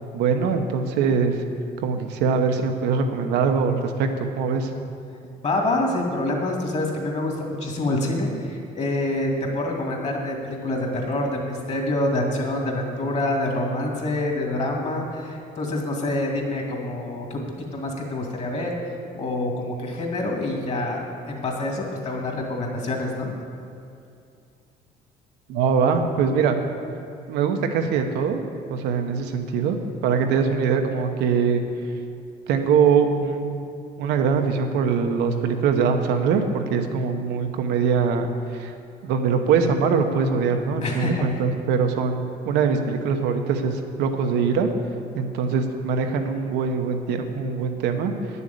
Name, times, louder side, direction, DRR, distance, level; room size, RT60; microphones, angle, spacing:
voice 1, 0.1-1.4 1.8-4.7 25.5-26.6 27.3-28.4 28.7-29.8 30.0-31.6 32.5-33.5 34.0-38.7 39.0-44.7 45.1-48.1, right 6 dB, 90° right, 5 dB, 1.1 m, -22 dB
voice 2, 5.4-17.4 17.7-18.7 19.1-23.3 40.8-41.4, left 1 dB, 40° left, 1 dB, 2.4 m, -26 dB
9.8 x 7.0 x 8.5 m, 2.5 s
cardioid pair, 110°, 17 cm